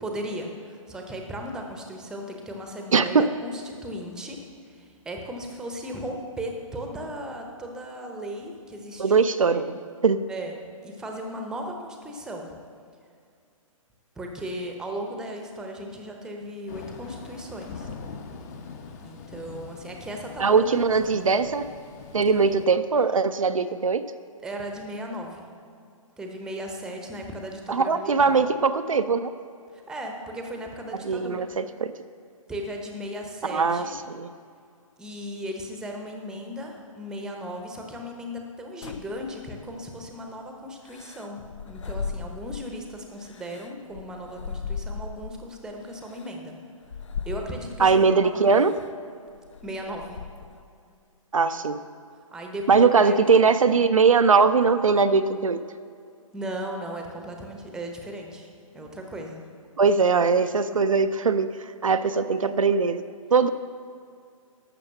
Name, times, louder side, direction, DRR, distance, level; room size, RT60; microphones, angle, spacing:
voice 1, 0.0-9.1 9.4-9.6 10.3-10.5 10.8-12.6 14.2-17.9 19.0-20.8 21.1-21.4 24.4-25.5 26.2-28.4 29.7-31.5 32.5-33.9 35.0-46.5 47.2-48.7 49.6-50.2 52.1-53.7 56.3-58.5 58.7-59.4, equal, 5° right, 2 dB, 0.9 m, -36 dB
voice 2, 2.9-3.3 9.0-10.2 20.4-21.7 22.1-24.1 27.7-29.3 31.1-31.9 33.5-33.9 34.1-34.3 47.8-48.7 51.3-51.8 52.7-55.6 59.8-63.0 63.3-63.5, right 5 dB, 70° right, 10 dB, 0.6 m, -21 dB
Thunder / Rain, 16.7-22.7, left 5 dB, 30° left, 1.0 m, -42 dB
sound 1, 38.8-40.0 40.9-42.8 43.2-45.5 46.1-46.2 46.8-48.0 48.5-48.9 49.3-50.6, left 5 dB, 60° left, 0.7 m, -37 dB
12.0 x 6.9 x 6.7 m, 2.3 s
figure-of-eight pair, 130°, 18 cm